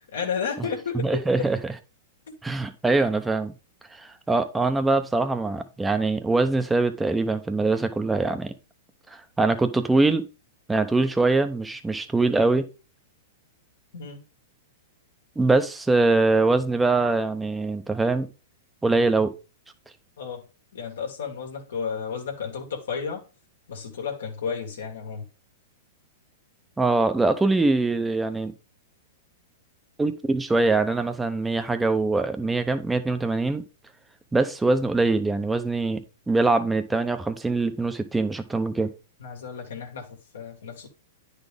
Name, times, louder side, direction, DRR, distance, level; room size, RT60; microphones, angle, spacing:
voice 1, 0.0-1.5 2.3-2.4 13.9-14.2 20.2-20.4 20.7-23.2 23.7-25.2 39.2-40.9, left 6 dB, 80° left, 1.6 m, -32 dB
voice 2, 0.9-1.6 2.4-3.5 3.9-8.5 9.1-10.3 10.7-12.6 15.4-18.3 18.8-19.3 26.8-28.5 30.0-33.6 34.3-38.9, right 3 dB, 10° right, 0.7 m, -23 dB
9.6 x 4.1 x 3.5 m
hypercardioid pair, 125°, 0 cm